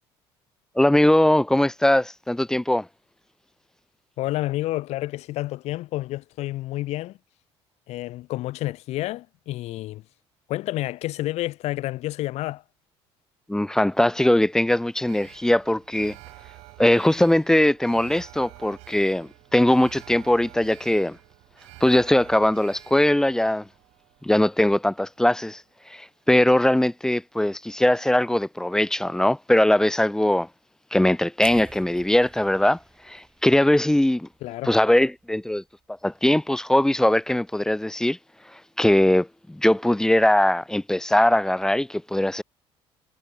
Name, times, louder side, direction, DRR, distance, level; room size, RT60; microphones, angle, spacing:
voice 1, 0.8-2.9 13.5-16.2 16.8-21.2 21.8-23.6 24.2-25.6 25.9-30.5 30.9-32.8 33.1-34.3 34.6-35.6 36.0-38.2 38.8-42.4, left 1 dB, 5° left, 0.4 m, -20 dB
voice 2, 4.2-7.2 7.9-10.0 10.5-12.6 34.4-34.7, left 16 dB, 70° left, 0.8 m, -29 dB
Alarm, 15.1-25.3 25.7-25.8, right 25 dB, 85° right, 1.2 m, -49 dB
sound 1, 31.4-35.4 35.8-36.0, right 3 dB, 20° right, 6.8 m, -48 dB
supercardioid pair, 90°, 11 cm